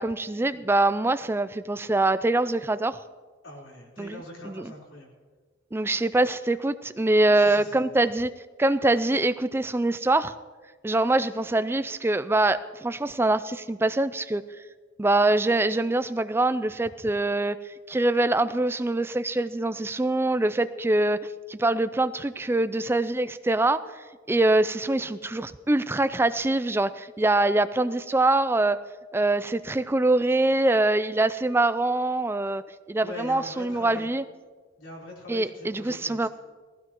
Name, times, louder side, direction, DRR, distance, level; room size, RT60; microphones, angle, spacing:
voice 1, 0.0-3.0 4.0-4.2 4.4-4.7 5.7-8.3 8.6-10.3 10.8-14.4 15.0-17.6 17.9-28.8 29.1-32.6 32.9-34.2 35.3-36.3, right 2 dB, 10° right, 13 dB, 0.3 m, -24 dB
voice 2, 3.4-5.1 7.3-7.9 33.0-34.1 34.8-36.3, left 1 dB, 80° left, -3 dB, 4.0 m, -42 dB
19.0 x 15.5 x 3.0 m, 1.4 s
head